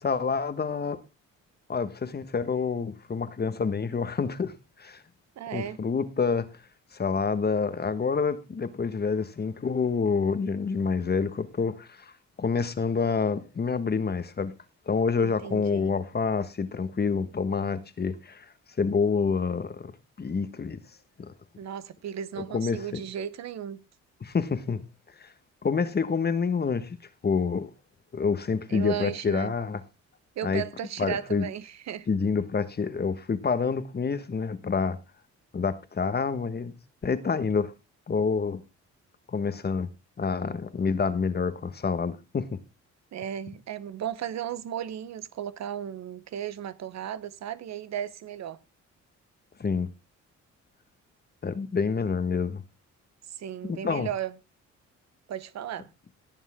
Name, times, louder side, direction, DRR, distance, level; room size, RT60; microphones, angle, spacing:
voice 1, 0.0-1.0 1.7-5.0 5.5-6.5 6.9-12.1 12.4-14.5 14.9-18.5 18.8-19.9 20.2-20.8 21.2-21.3 22.5-23.0 24.2-24.8 25.2-25.3 25.6-27.0 27.2-27.7 28.1-29.8 30.4-30.6 31.0-31.4 32.1-35.0 35.5-36.7 37.0-37.7 38.1-38.6 39.3-39.9 40.2-42.6 49.6-49.9 51.4-52.6 53.6-54.1, left 5 dB, 35° left, 1.3 m, -27 dB
voice 2, 5.4-5.8 15.2-15.9 21.6-23.8 28.7-29.5 30.4-32.1 43.1-48.6 53.3-54.3 55.3-55.9, right 9 dB, 60° right, 0.9 m, -35 dB
17.5 x 7.3 x 3.6 m
cardioid pair, 90°, 30 cm